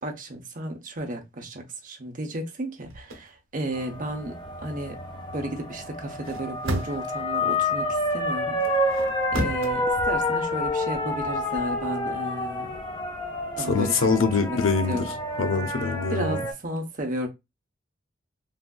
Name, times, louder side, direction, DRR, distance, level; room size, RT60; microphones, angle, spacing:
voice 1, 0.0-5.0 5.3-8.6 8.8-9.1 9.3-12.7 13.6-14.6 14.9-15.1 16.1-17.3, right 1 dB, 45° right, 0.8 m, -33 dB
sound 1, 2.8-3.2 6.1-7.2 8.6-9.7, equal, 80° right, 0.8 m, -32 dB
sound 2, 3.7-16.5, left 1 dB, 25° left, 0.7 m, -29 dB
voice 2, 13.6-16.4, left 4 dB, 85° left, 0.6 m, -24 dB
3.4 x 2.5 x 2.2 m
head